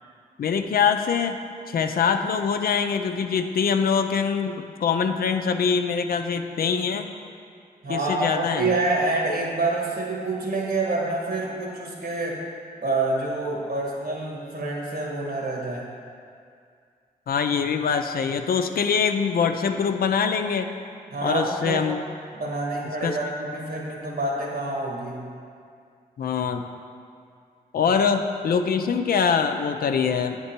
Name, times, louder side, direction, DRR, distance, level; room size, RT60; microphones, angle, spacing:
voice 1, 0.4-1.4 1.7-7.1 7.9-8.7 17.3-20.7 21.2-22.0 23.0-23.2 26.2-26.6 27.7-30.4, left 6 dB, 65° left, 7 dB, 0.4 m, -23 dB
voice 2, 7.8-12.4 12.8-15.9 21.1-21.9 22.3-25.3, right 2 dB, 65° right, -3 dB, 1.6 m, -27 dB
8.6 x 3.7 x 4.4 m, 2.3 s
cardioid pair, 45°, 16 cm